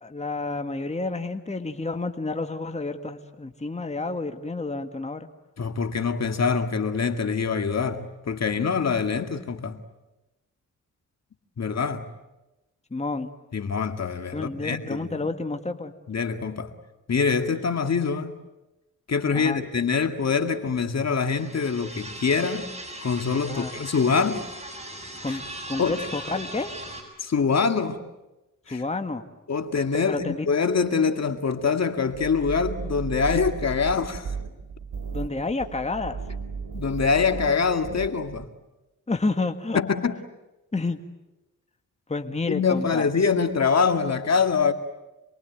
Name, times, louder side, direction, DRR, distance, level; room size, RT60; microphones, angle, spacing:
voice 1, 0.0-5.3 12.9-13.3 14.3-15.9 19.3-19.6 23.5-23.7 25.2-25.4 25.7-26.7 28.7-29.2 29.9-30.5 35.1-36.2 39.1-39.8 40.7-41.0 42.1-43.1, left 3 dB, 20° left, 1.9 m, -30 dB
voice 2, 5.6-9.8 11.6-12.1 13.5-15.3 16.1-16.7 17.1-18.4 19.1-22.7 23.0-24.5 25.3-25.4 25.8-26.1 27.2-28.0 28.7-28.8 29.5-34.4 36.7-38.5 39.7-40.2 42.5-44.7, left 5 dB, 50° left, 2.1 m, -24 dB
sound 1, 21.2-27.0, right 1 dB, 20° right, 7.7 m, -39 dB
sound 2, 32.1-38.5, right 5 dB, 70° right, 2.9 m, -35 dB
28.0 x 22.5 x 9.3 m
cardioid pair, 70°, 33 cm